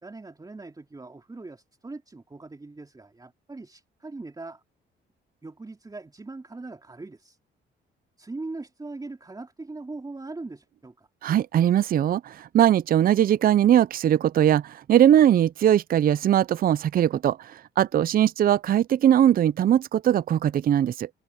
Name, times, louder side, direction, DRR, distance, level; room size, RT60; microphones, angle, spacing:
voice 1, 0.0-4.6 5.4-7.4 8.2-11.1, right 3 dB, 20° right, 3.3 m, -40 dB
voice 2, 11.2-21.1, right 10 dB, 45° right, 0.5 m, -20 dB
open air
cardioid pair, 90°, 20 cm